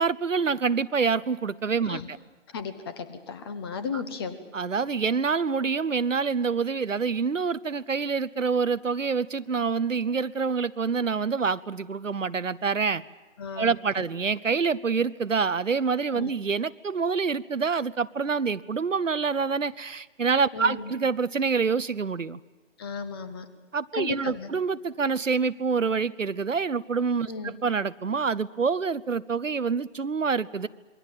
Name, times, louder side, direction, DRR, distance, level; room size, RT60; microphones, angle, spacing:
voice 1, 0.0-2.2 3.9-4.0 4.5-13.0 13.6-22.4 23.7-30.7, right 5 dB, 80° right, 15 dB, 0.9 m, -26 dB
voice 2, 2.5-4.4 13.4-14.0 16.1-16.3 20.5-20.9 22.8-23.5 23.9-24.5 27.2-27.5, left 5 dB, 20° left, 11 dB, 1.2 m, -35 dB
27.0 x 23.0 x 7.4 m, 1.3 s
figure-of-eight pair, 150°, 37 cm